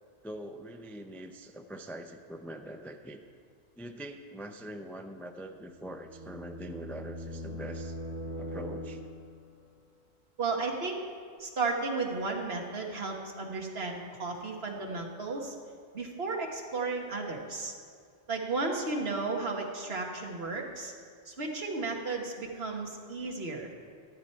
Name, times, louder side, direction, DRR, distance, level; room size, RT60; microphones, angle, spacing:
voice 1, 0.2-3.2 3.8-8.0 8.4-9.0, right 1 dB, 5° left, 6 dB, 0.3 m, -43 dB
sound 1, 5.5-9.4, equal, 45° right, 4.0 m, -41 dB
voice 2, 10.4-11.0 11.4-15.5 15.9-17.7 18.3-20.9 21.3-23.7, right 3 dB, 65° right, 1 dB, 1.7 m, -34 dB
13.0 x 12.0 x 4.5 m, 2.2 s
omnidirectional pair, 1.1 m